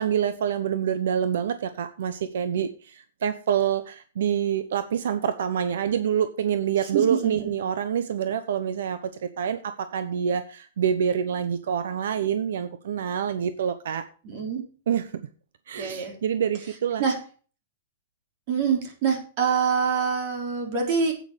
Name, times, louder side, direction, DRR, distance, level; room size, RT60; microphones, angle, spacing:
voice 1, 0.0-14.0 14.9-15.1 15.7-17.0, right 8 dB, 75° right, 11 dB, 0.9 m, -26 dB
voice 2, 6.9-7.5 14.2-14.6 15.8-16.1 17.0-17.2 18.5-21.1, right 6 dB, 40° right, 2 dB, 3.9 m, -25 dB
9.7 x 8.8 x 5.0 m, 0.38 s
supercardioid pair, 170°, 0 cm